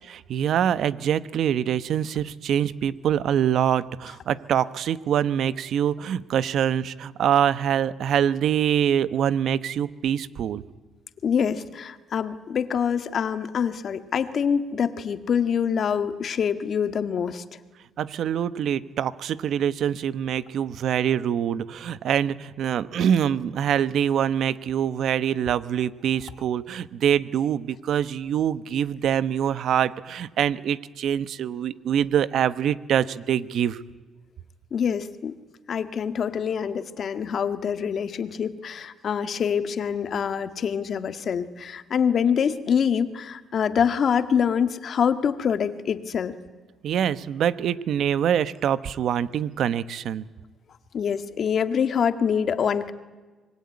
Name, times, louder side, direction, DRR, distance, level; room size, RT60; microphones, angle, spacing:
voice 1, 0.1-10.6 18.0-33.8 46.8-50.2, right 9 dB, 70° right, 16 dB, 1.0 m, -24 dB
voice 2, 11.2-17.4 34.7-35.3 35.7-46.4 50.9-52.9, left 7 dB, 55° left, 10 dB, 1.7 m, -25 dB
25.5 x 22.0 x 9.7 m, 1.3 s
cardioid pair, 90°, 0 cm